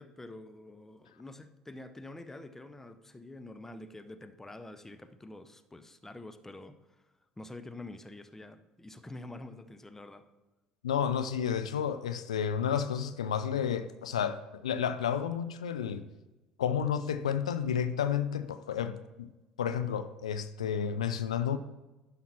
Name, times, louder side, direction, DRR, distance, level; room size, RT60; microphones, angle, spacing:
voice 1, 0.0-6.7 7.4-10.3, left 2 dB, 10° left, 0.7 m, -47 dB
voice 2, 10.8-16.0 16.6-19.3 19.6-21.6, left 8 dB, 85° left, 0.4 m, -31 dB
11.5 x 5.8 x 4.3 m
hypercardioid pair, 60°, 3 cm